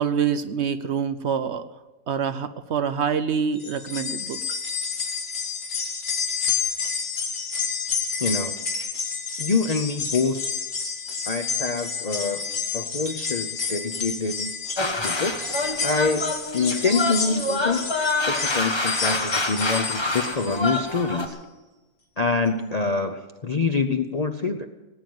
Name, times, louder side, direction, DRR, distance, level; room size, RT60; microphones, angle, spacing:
voice 1, 0.0-1.7 2.1-4.4, right 7 dB, 60° right, 11 dB, 0.8 m, -26 dB
sound 1, 3.6-20.9 21.3-21.4 22.5-22.6, left 5 dB, 80° left, 2.4 m, -30 dB
voice 2, 8.2-8.6 9.4-10.4 11.3-12.5 12.7-14.5 15.0-17.9 18.3-21.4 22.2-24.7, left 4 dB, 45° left, 5 dB, 0.5 m, -26 dB
sound 2, 14.8-21.3, left 2 dB, 20° left, 1.2 m, -27 dB
18.5 x 9.1 x 7.8 m, 1.2 s
omnidirectional pair, 1.5 m